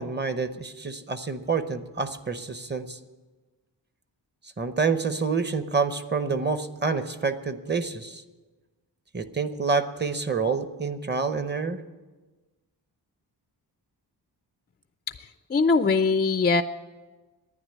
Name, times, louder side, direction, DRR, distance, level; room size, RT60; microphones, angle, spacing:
voice 1, 0.0-3.0 4.6-8.2 9.1-11.8, right 4 dB, 25° right, 11 dB, 0.8 m, -28 dB
voice 2, 15.5-16.6, left 4 dB, 25° left, 11 dB, 0.3 m, -21 dB
11.0 x 9.8 x 9.2 m, 1.3 s
wide cardioid pair, 110°, 42 cm